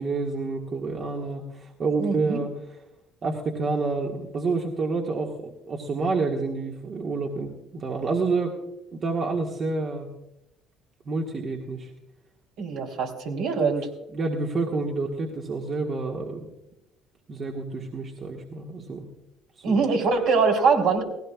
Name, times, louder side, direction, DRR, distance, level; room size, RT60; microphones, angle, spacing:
voice 1, 0.0-2.5 3.2-8.6 8.9-10.1 11.1-11.9 13.6-13.7 14.1-16.5 17.3-19.0 19.7-19.8, right 3 dB, 45° right, 0 dB, 1.8 m, -28 dB
voice 2, 2.0-2.4 12.6-13.9 19.6-21.0, right 4 dB, 70° right, 0 dB, 3.4 m, -23 dB
19.0 x 16.5 x 2.4 m, 0.90 s
hypercardioid pair, 60°, 0 cm